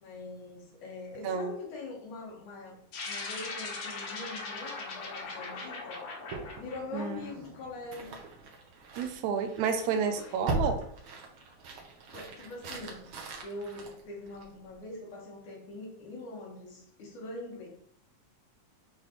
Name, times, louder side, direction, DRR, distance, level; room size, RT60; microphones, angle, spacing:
voice 1, 0.0-2.8 3.1-6.0 6.6-8.2 9.8-10.4 11.7-13.0 13.4-17.7, left 2 dB, 80° left, -2 dB, 3.1 m, -43 dB
sound 1, 2.9-7.6, left 3 dB, 65° left, 2.2 m, -40 dB
sound 2, 6.3-14.7, right 2 dB, 60° right, 1.5 m, -40 dB
voice 2, 9.0-10.8, right 6 dB, 80° right, 7 dB, 2.0 m, -30 dB
8.8 x 3.7 x 3.1 m, 0.67 s
omnidirectional pair, 3.4 m